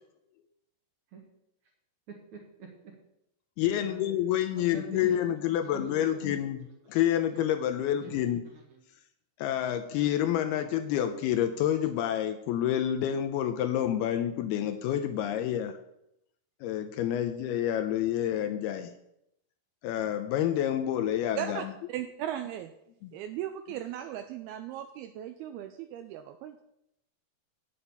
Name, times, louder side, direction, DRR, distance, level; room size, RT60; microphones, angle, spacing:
voice 1, 2.1-2.9 3.6-4.0 4.5-5.3 5.6-6.4 6.8-6.9 7.4-7.5 8.0-8.8, right 5 dB, 55° right, 1 dB, 2.3 m, -47 dB
voice 2, 3.6-8.5 9.4-15.7 16.6-18.9 19.8-21.7 23.0-23.1, left 11 dB, 80° left, 8 dB, 2.4 m, -28 dB
voice 3, 21.4-22.7 23.1-26.6, right 11 dB, 80° right, 8 dB, 2.3 m, -37 dB
9.2 x 8.7 x 5.5 m, 0.81 s
omnidirectional pair, 4.9 m